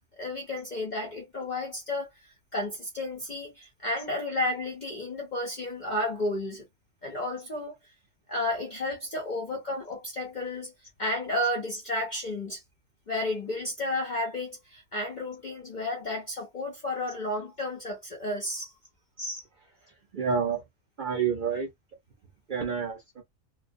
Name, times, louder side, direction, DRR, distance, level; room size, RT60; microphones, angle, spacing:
voice 1, 0.0-6.6 7.0-7.7 8.3-10.7 11.0-12.6 13.1-18.8, left 1 dB, 50° left, 0.5 m, -32 dB
voice 2, 19.8-20.6 21.0-21.7 22.5-23.2, right 6 dB, 55° right, 0.5 m, -29 dB
2.4 x 2.2 x 2.5 m
omnidirectional pair, 1.5 m